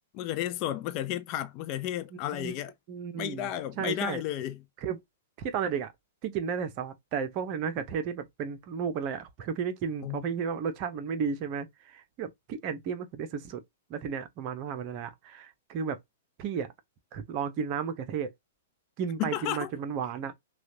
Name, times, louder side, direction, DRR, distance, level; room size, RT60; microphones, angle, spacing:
voice 1, 0.1-2.7 3.2-4.6 10.0-10.2 19.2-19.7, left 12 dB, 35° left, 0.6 m, -33 dB
voice 2, 2.9-3.5 3.8-4.2 4.8-5.0 5.4-5.9 6.2-13.6 13.9-16.0 16.4-16.7 17.1-18.3 19.0-20.3, right 6 dB, 40° right, 0.8 m, -33 dB
6.0 x 2.4 x 2.8 m
figure-of-eight pair, 105°, 0 cm